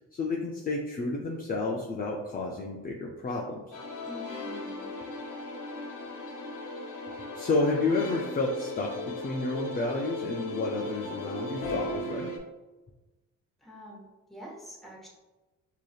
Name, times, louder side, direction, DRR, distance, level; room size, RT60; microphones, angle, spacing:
voice 1, 0.1-3.6 7.3-12.3, left 3 dB, 30° left, -1 dB, 0.5 m, -30 dB
sound 1, 3.7-12.4, left 2 dB, 85° left, 0.8 m, -37 dB
voice 2, 4.0-4.9 13.6-14.0 14.3-15.1, equal, ahead, -3 dB, 1.1 m, -46 dB
4.6 x 2.8 x 2.3 m, 1.1 s
cardioid pair, 90°, 30 cm